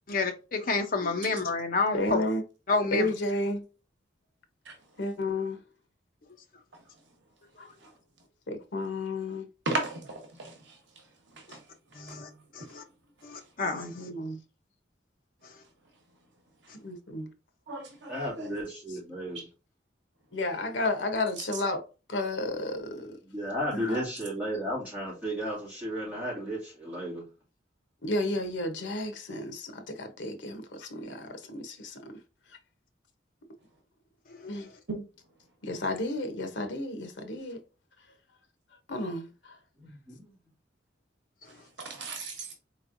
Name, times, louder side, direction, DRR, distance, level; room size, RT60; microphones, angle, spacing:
voice 1, 0.1-2.2 2.7-3.1 12.0-12.3 12.5-12.8 13.2-13.9 34.4-34.5, left 3 dB, 45° left, 0.6 m, -29 dB
voice 2, 1.9-2.4 2.9-3.6 5.0-5.6 7.6-7.7 8.5-9.4 13.7-14.4 16.8-17.3 20.3-21.8 22.1-23.2 23.7-24.0 28.0-32.0 34.5-34.7 35.6-37.6 38.9-39.3, left 2 dB, 80° left, 0.9 m, -32 dB
voice 3, 9.6-11.6 11.9-12.2 12.6-12.7 16.6-16.7 17.7-18.6 19.3-19.4 20.4-20.6 21.4-21.6 23.6-23.7 34.9-35.0 41.5-42.6, right 3 dB, 75° right, 1.0 m, -37 dB
voice 4, 18.1-19.4 23.3-27.2 39.8-40.3, equal, 10° right, 2.3 m, -34 dB
4.3 x 3.1 x 2.5 m
head